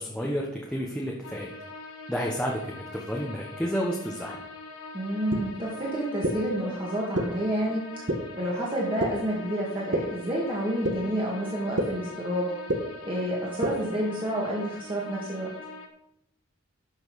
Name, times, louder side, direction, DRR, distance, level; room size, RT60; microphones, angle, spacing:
voice 1, 0.0-1.5 2.1-4.4, equal, 5° left, -2 dB, 1.1 m, -31 dB
sound 1, 1.2-15.9, left 3 dB, 85° left, 1.6 m, -43 dB
voice 2, 4.9-7.8 8.4-12.5 13.0-15.5, right 1 dB, 25° right, -5 dB, 2.0 m, -29 dB
sound 2, 5.3-5.4 6.2-6.3 7.1-7.2 8.1-8.2 9.0-9.1 9.9-10.0 10.8-10.9 11.8-11.9 12.7-12.8 13.6-13.7, right 1 dB, 55° right, 1.4 m, -24 dB
12.0 x 6.2 x 4.9 m, 0.80 s
head